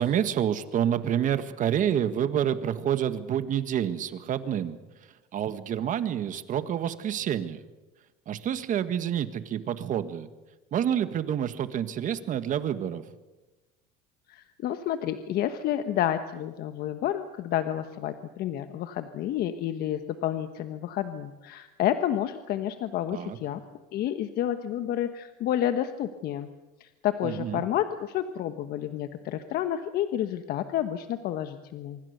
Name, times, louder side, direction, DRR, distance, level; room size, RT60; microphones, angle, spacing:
voice 1, 0.0-4.8 5.3-7.6 8.3-10.3 10.7-13.0 23.1-23.4 27.2-27.6, right 9 dB, 40° right, 11 dB, 1.7 m, -28 dB
voice 2, 14.3-23.6 23.9-26.5 26.8-32.0, left 11 dB, 50° left, 9 dB, 1.3 m, -30 dB
25.5 x 23.5 x 6.8 m, 1.1 s
supercardioid pair, 120°, 20 cm